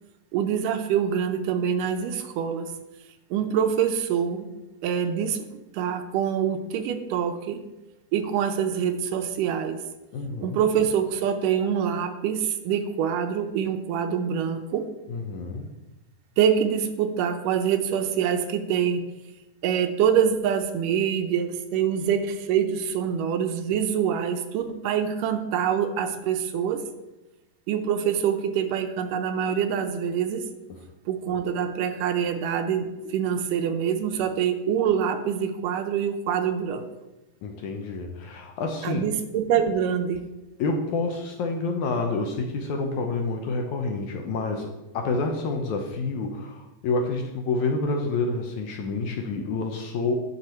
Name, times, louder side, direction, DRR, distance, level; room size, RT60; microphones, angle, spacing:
voice 1, 0.3-2.7 3.3-4.5 4.8-5.5 5.7-7.6 8.1-9.8 10.4-14.9 16.4-19.0 19.6-26.9 27.7-30.5 31.1-36.8 38.8-40.2, right 8 dB, 80° right, 7 dB, 2.2 m, -25 dB
voice 2, 10.1-10.6 15.1-15.7 37.4-39.1 40.6-50.2, left 3 dB, 75° left, 3 dB, 2.0 m, -28 dB
9.6 x 6.4 x 4.4 m, 1.0 s
omnidirectional pair, 3.9 m